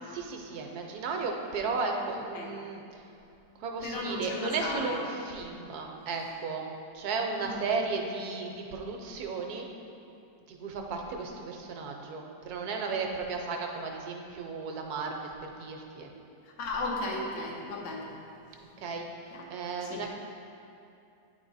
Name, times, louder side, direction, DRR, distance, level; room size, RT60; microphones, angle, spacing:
voice 1, 0.0-3.0 3.6-9.7 10.5-16.1 18.8-20.1, right 4 dB, 75° right, 2 dB, 1.1 m, -35 dB
voice 2, 3.8-5.0 7.4-7.6 16.6-18.1 19.3-19.4 19.8-20.0, left 2 dB, 85° left, -2 dB, 1.5 m, -35 dB
8.9 x 3.6 x 4.0 m, 2.6 s
omnidirectional pair, 1.8 m